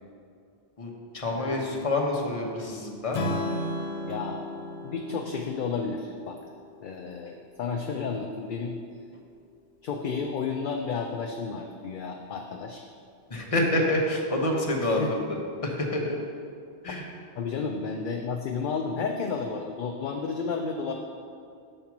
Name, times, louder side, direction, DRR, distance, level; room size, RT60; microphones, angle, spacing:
voice 1, 0.8-3.2 13.3-16.2 16.8-17.1, left 1 dB, 35° left, 0 dB, 1.0 m, -27 dB
voice 2, 1.3-1.7 4.0-4.5 4.8-6.4 6.8-8.8 9.8-12.9 14.8-15.1 17.4-20.9, left 5 dB, 60° left, 3 dB, 0.6 m, -32 dB
Strum, 3.1-7.3, left 1 dB, 85° left, 1.1 m, -34 dB
7.4 x 4.4 x 5.9 m, 2.3 s
omnidirectional pair, 1.1 m